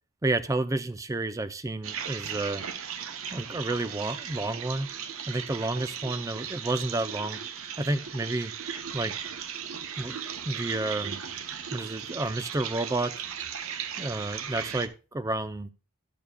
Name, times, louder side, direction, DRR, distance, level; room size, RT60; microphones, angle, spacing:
voice 1, 0.2-2.6 3.3-4.9 5.3-7.4 7.8-8.5 8.9-9.2 10.0-10.2 10.5-11.2 11.7-13.1 14.0-15.7, right 2 dB, 15° right, 11 dB, 0.4 m, -30 dB
sound 1, 1.8-14.9, right 8 dB, 65° right, 0.7 m, -37 dB
12.5 x 6.8 x 2.2 m, 0.34 s
head